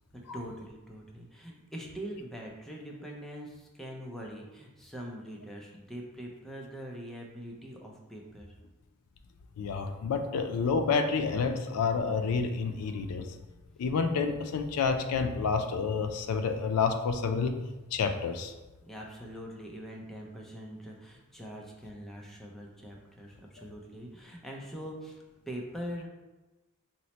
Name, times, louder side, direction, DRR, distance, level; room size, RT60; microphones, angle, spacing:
voice 1, 0.1-8.5 18.9-26.1, equal, ahead, -1 dB, 0.4 m, -43 dB
voice 2, 9.6-13.3 13.8-17.5 17.9-18.5, left 5 dB, 85° left, 7 dB, 0.4 m, -29 dB
2.9 x 2.0 x 4.0 m, 1.1 s
head